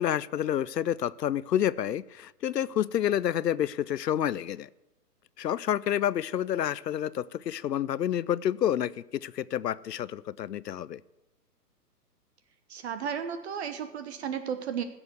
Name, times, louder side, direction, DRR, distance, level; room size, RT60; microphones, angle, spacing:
voice 1, 0.0-4.7 5.4-11.0, left 10 dB, 80° left, 21 dB, 0.7 m, -29 dB
voice 2, 12.7-14.8, right 8 dB, 40° right, 10 dB, 1.1 m, -34 dB
15.5 x 7.0 x 8.1 m, 0.98 s
hypercardioid pair, 135°, 49 cm